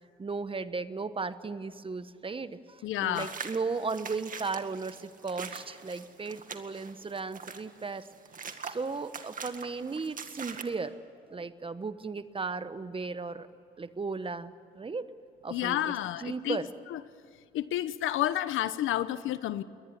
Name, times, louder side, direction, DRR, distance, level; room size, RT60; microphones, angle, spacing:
voice 1, 0.2-8.1 8.6-10.9 11.3-13.5 13.8-15.1 15.4-16.7, right 4 dB, 25° right, 12 dB, 1.2 m, -36 dB
voice 2, 2.8-3.3 15.5-16.6 16.9-17.0 17.5-19.6, left 13 dB, 85° left, 14 dB, 1.0 m, -30 dB
sound 1, 3.1-10.6, right 5 dB, 45° right, 2.0 m, -43 dB
22.5 x 19.0 x 9.7 m, 2.5 s
cardioid pair, 90°, 20 cm